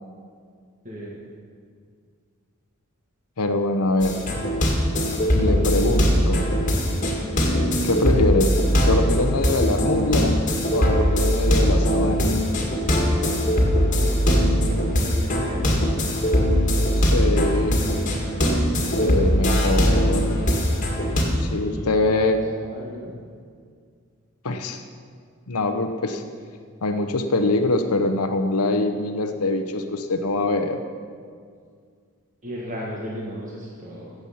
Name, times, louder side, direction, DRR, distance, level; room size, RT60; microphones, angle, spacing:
voice 1, 0.8-1.2 14.0-14.2 14.6-16.5 18.9-19.4 21.6-22.2 22.7-23.2 32.4-34.1, equal, 35° right, -4 dB, 1.5 m, -35 dB
voice 2, 3.4-4.2 5.3-6.5 7.8-8.5 8.8-10.3 10.7-12.3 17.0-17.8 19.0-20.2 21.4-22.4 24.4-24.8 25.5-26.2 26.8-30.8, left 2 dB, 85° left, 6 dB, 0.9 m, -23 dB
sound 1, 4.0-21.2, equal, 35° left, 2.0 m, -21 dB
15.5 x 7.9 x 5.7 m, 2.1 s
head